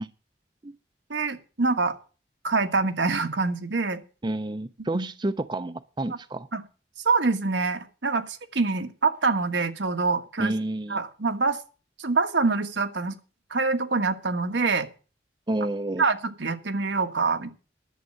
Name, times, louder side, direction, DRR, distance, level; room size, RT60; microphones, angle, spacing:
voice 1, 1.1-1.9 2.4-4.0 4.9-5.1 6.5-6.6 7.0-10.5 10.9-11.6 12.0-13.2 13.5-14.9 16.0-17.5, right 4 dB, 90° right, 7 dB, 1.4 m, -25 dB
voice 2, 4.2-6.5 10.4-11.0 15.5-16.0, right 2 dB, 25° right, 12 dB, 0.5 m, -29 dB
11.0 x 7.6 x 7.6 m, 0.35 s
head